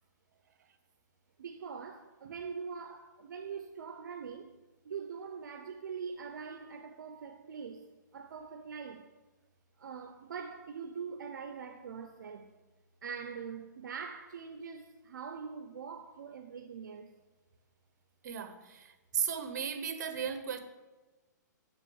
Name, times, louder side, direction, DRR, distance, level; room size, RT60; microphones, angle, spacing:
voice 1, 1.4-4.5 4.8-9.1 9.8-12.5 13.0-17.1, right 6 dB, 85° right, 0.7 m, -43 dB
voice 2, 18.2-20.6, right 7 dB, 65° right, 1.2 m, -36 dB
7.0 x 6.1 x 7.1 m
hypercardioid pair, 150°, 10 cm